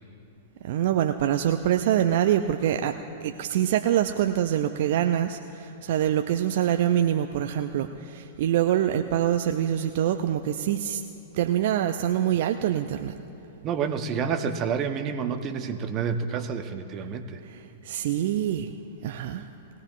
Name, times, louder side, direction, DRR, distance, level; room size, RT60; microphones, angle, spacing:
voice 1, 0.6-11.0 11.3-13.2 17.4-18.7 19.0-19.5, right 11 dB, 55° right, 7 dB, 0.4 m, -25 dB
voice 2, 13.6-17.4, right 6 dB, 35° right, 8 dB, 0.9 m, -29 dB
21.0 x 15.5 x 2.5 m, 2.9 s
figure-of-eight pair, 105°, 0 cm